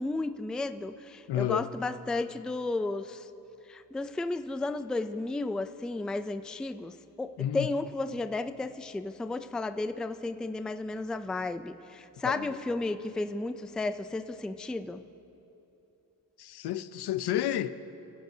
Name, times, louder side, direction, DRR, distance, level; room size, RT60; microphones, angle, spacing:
voice 1, 0.0-3.3 3.7-15.0, left 2 dB, ahead, 0.3 m, -33 dB
voice 2, 1.3-1.7 7.4-7.7 12.2-12.5 16.4-17.7, left 12 dB, 70° left, 0.7 m, -31 dB
25.0 x 15.5 x 2.7 m
cardioid pair, 105°, 40 cm